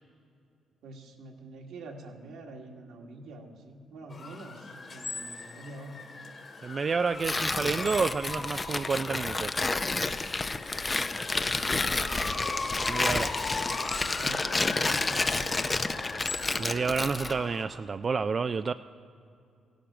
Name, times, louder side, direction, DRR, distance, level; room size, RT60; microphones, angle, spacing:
voice 1, 0.8-6.0 11.4-12.2 14.2-16.1, right 2 dB, 80° right, 1 dB, 1.8 m, -46 dB
sound 1, 4.1-17.6, left 3 dB, 40° left, 2.1 m, -38 dB
voice 2, 6.6-9.6 12.9-13.3 16.6-18.7, right 5 dB, 40° right, 10 dB, 0.3 m, -29 dB
Tearing, 7.2-17.4, left 3 dB, 25° left, 0.5 m, -30 dB
16.0 x 10.0 x 6.0 m, 2.5 s
cardioid pair, 90°, 0 cm